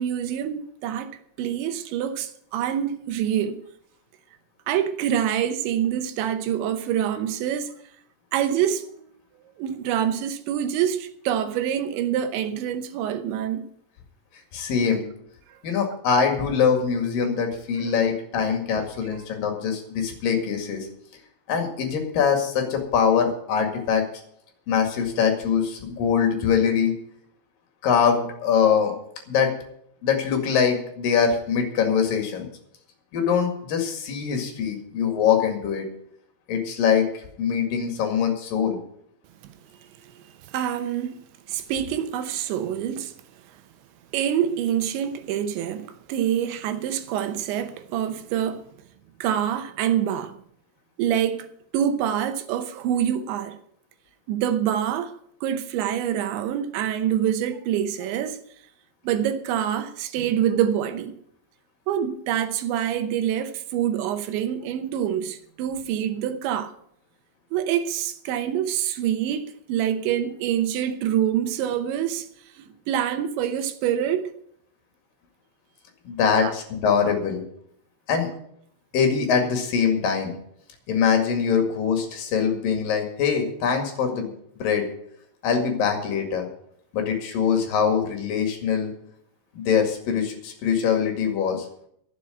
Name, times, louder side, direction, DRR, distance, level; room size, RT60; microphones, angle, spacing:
voice 1, 0.0-3.6 4.7-7.7 8.3-8.9 9.6-13.7 17.8-17.9 18.4-18.5 40.2-40.3 40.5-41.2 41.5-43.1 44.1-48.7 49.2-50.4 51.0-51.5 51.7-53.6 54.3-55.1 55.4-58.4 59.0-61.1 61.9-66.7 67.5-72.3 72.6-74.3 76.4-76.5, right 10 dB, 75° right, 3.0 m, -26 dB
voice 2, 14.5-15.1 15.6-20.9 21.5-24.0 24.7-26.9 27.8-28.9 29.3-29.5 30.0-32.5 33.1-35.9 36.5-38.8 76.0-77.4 78.1-78.3 78.9-80.4 80.9-84.9 85.4-86.5 86.9-88.9 89.5-91.6, left 7 dB, 55° left, 3.2 m, -23 dB
11.5 x 7.8 x 9.1 m
omnidirectional pair, 5.6 m